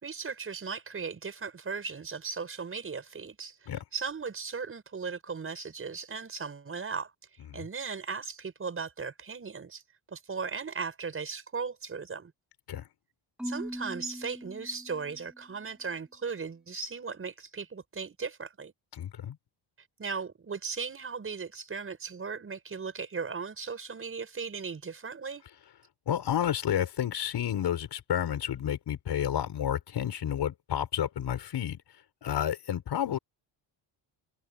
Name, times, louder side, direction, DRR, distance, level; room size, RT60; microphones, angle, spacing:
voice 1, 0.0-7.1 7.5-9.8 10.1-12.3 13.4-18.7 20.0-25.4, right 5 dB, 30° right, 5.6 m, -37 dB
Marimba xylophone / Wood, 13.4-15.6, equal, ahead, 2.0 m, -41 dB
voice 2, 18.9-19.4 26.1-31.8 32.2-33.2, left 10 dB, 60° left, 5.1 m, -30 dB
cardioid pair, 155°, 46 cm